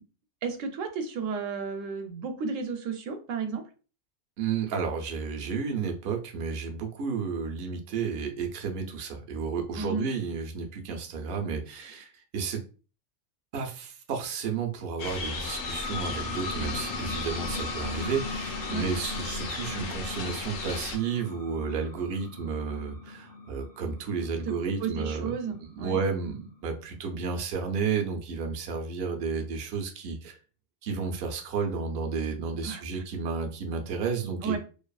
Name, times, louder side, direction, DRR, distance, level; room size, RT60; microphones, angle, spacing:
voice 1, 0.4-3.6 9.8-10.1 18.7-18.9 24.5-24.6 24.8-26.0 32.6-32.8 34.4-34.6, right 5 dB, 90° right, 6 dB, 1.0 m, -32 dB
voice 2, 4.4-12.6 13.5-25.3 25.8-30.4 30.8-34.6, right 5 dB, 60° right, 3 dB, 0.7 m, -32 dB
sound 1, 15.0-21.0, left 3 dB, 90° left, 1.0 m, -36 dB
sound 2, 15.3-26.6, left 3 dB, 45° left, 0.5 m, -39 dB
2.6 x 2.4 x 2.3 m, 0.35 s
omnidirectional pair, 1.3 m